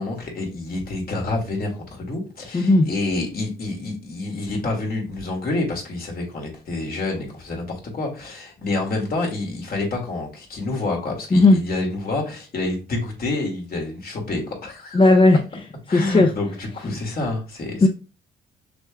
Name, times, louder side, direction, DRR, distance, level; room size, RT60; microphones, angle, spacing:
voice 1, 0.0-15.1 15.9-17.9, left 2 dB, 50° left, 1 dB, 2.1 m, -28 dB
voice 2, 2.5-2.9 11.3-11.6 14.9-15.4 15.9-16.3 17.8-17.9, left 2 dB, 25° left, 3 dB, 0.6 m, -14 dB
5.9 x 3.6 x 2.3 m, 0.33 s
cardioid pair, 90°, 20 cm